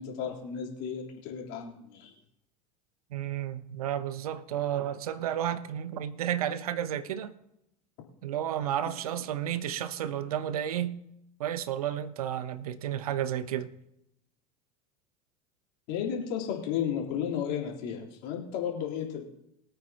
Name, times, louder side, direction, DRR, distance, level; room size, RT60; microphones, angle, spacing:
voice 1, 0.0-2.1 15.9-19.3, left 8 dB, 60° left, 3.7 m, -33 dB
voice 2, 3.1-7.3 8.2-11.0 11.4-13.7, right 10 dB, 75° right, 0.9 m, -32 dB
22.5 x 9.0 x 2.9 m
hypercardioid pair, 80°, 19 cm